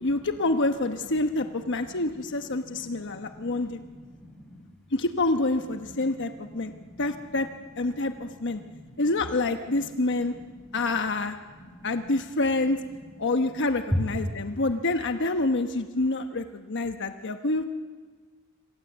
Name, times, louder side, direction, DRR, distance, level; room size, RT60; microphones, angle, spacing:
voice 1, 0.0-3.8 4.9-6.7 7.0-7.5 7.8-8.6 9.0-10.3 10.7-11.4 11.8-12.8 13.2-17.6, left 2 dB, 55° left, 7 dB, 1.1 m, -27 dB
voice 2, 1.3-2.1 2.4-4.6 5.8-7.4 7.9-9.2 9.7-11.1 11.5-12.1 12.9-13.2 13.4-13.6 13.9-14.2, left 1 dB, ahead, 0 dB, 6.2 m, -39 dB
26.0 x 26.0 x 8.0 m, 1.5 s
head